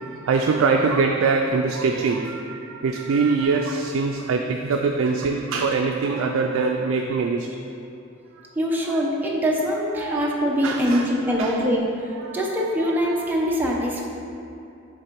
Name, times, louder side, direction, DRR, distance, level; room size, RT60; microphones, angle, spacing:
voice 1, 0.0-7.5 8.4-8.5 8.9-9.0 10.0-10.4 10.6-11.7 12.1-13.3, right 4 dB, 75° right, 2 dB, 0.4 m, -24 dB
voice 2, 8.5-14.1, equal, 10° right, -3 dB, 0.7 m, -23 dB
6.6 x 3.5 x 4.5 m, 2.6 s
head